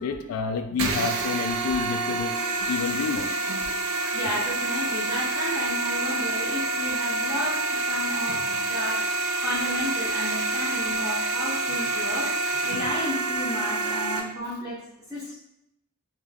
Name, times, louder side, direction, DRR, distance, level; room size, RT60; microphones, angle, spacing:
voice 1, 0.0-2.3 2.7-3.3, left 5 dB, 75° left, 7 dB, 0.3 m, -28 dB
sound 1, 0.8-14.2, right 2 dB, 60° right, 0.4 m, -27 dB
voice 2, 4.1-7.6 7.9-14.8 15.1-15.3, left 1 dB, ahead, -10 dB, 0.5 m, -32 dB
2.3 x 2.2 x 3.2 m, 0.82 s
head